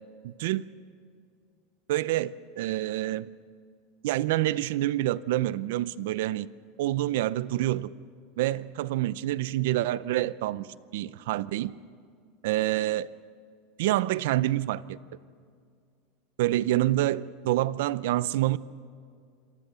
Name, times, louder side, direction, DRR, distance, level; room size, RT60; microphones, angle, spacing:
voice 1, 0.2-0.6 1.9-3.3 4.0-6.5 6.8-7.9 8.4-10.7 10.9-11.8 12.4-13.1 13.8-15.0 16.4-18.6, right 15 dB, 70° right, 18 dB, 0.6 m, -27 dB
27.0 x 18.5 x 6.9 m, 2.2 s
supercardioid pair, 165°, 0 cm